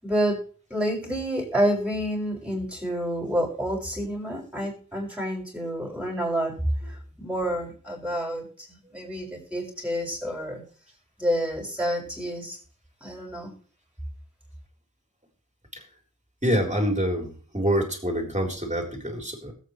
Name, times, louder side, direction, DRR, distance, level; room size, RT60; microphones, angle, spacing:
voice 1, 0.0-0.4 0.7-10.6 11.2-12.6 13.0-13.6, equal, 5° right, -1 dB, 6.6 m, -28 dB
voice 2, 16.4-19.5, equal, 20° right, 2 dB, 3.9 m, -26 dB
20.5 x 8.5 x 3.2 m, 0.42 s
wide cardioid pair, 40°, 33 cm